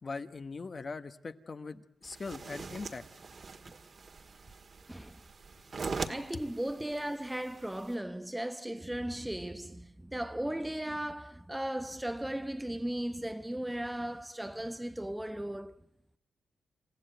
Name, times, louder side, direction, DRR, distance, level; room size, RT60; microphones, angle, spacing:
voice 1, 0.0-3.0, left 4 dB, 45° left, 1.3 m, -41 dB
sound 1, 2.0-7.9, right 4 dB, 50° right, 1.7 m, -42 dB
voice 2, 4.9-5.2 6.1-15.8, right 1 dB, 10° right, 0.9 m, -36 dB
28.0 x 15.5 x 9.2 m
cardioid pair, 75°, 0 cm